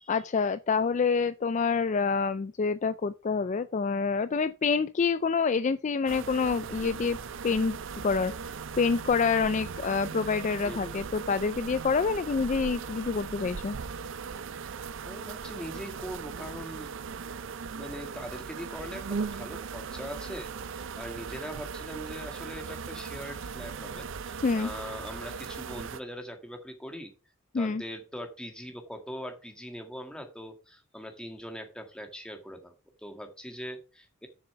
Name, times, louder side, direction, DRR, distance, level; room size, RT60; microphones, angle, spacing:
voice 1, 0.1-7.2 7.4-13.8 24.4-24.7 27.5-27.8, left 5 dB, 35° left, 0.4 m, -27 dB
sound 1, 6.1-26.0, right 5 dB, 60° right, 0.5 m, -38 dB
voice 2, 10.6-11.0 15.0-17.0 17.7-20.5 21.0-27.1 27.5-34.3, equal, 5° left, 1.8 m, -41 dB
7.2 x 6.8 x 5.7 m
head